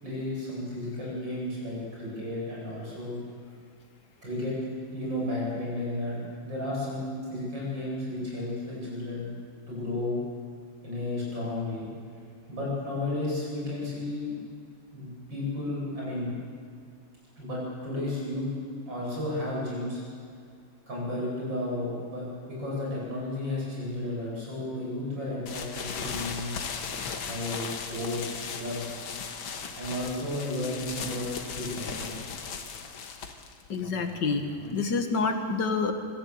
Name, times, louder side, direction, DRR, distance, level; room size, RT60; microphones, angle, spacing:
voice 1, 0.0-3.2 4.2-4.6 4.9-6.2 6.4-9.3 9.7-10.2 10.8-11.9 12.5-14.3 14.9-16.3 17.4-18.5 18.9-20.0 20.9-26.6 27.3-29.0 29.8-32.1, left 1 dB, 65° right, -5 dB, 8.8 m, -33 dB
sound 1, 25.5-35.0, left 6 dB, 85° left, 2.2 m, -37 dB
voice 2, 33.7-34.4 34.7-35.9, left 4 dB, 60° left, 6 dB, 2.4 m, -27 dB
25.5 x 16.0 x 8.0 m, 2.3 s
omnidirectional pair, 2.2 m